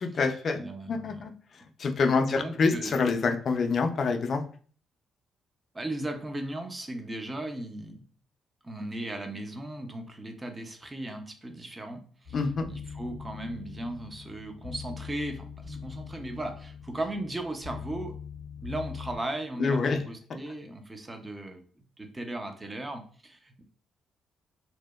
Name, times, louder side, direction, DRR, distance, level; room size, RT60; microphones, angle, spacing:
voice 1, 0.0-0.6 0.9-1.3 1.8-4.4 12.3-12.6 19.6-20.0, left 4 dB, 50° left, 5 dB, 0.3 m, -26 dB
voice 2, 0.5-1.3 2.3-2.9 5.7-8.0 8.6-12.4 12.7-18.1 18.6-21.6 22.0-23.6, right 1 dB, 20° right, 6 dB, 0.4 m, -37 dB
sound 1, 12.2-19.2, left 6 dB, 75° right, 1.5 m, -42 dB
2.7 x 2.0 x 2.2 m, 0.43 s
cardioid pair, 90°, 0 cm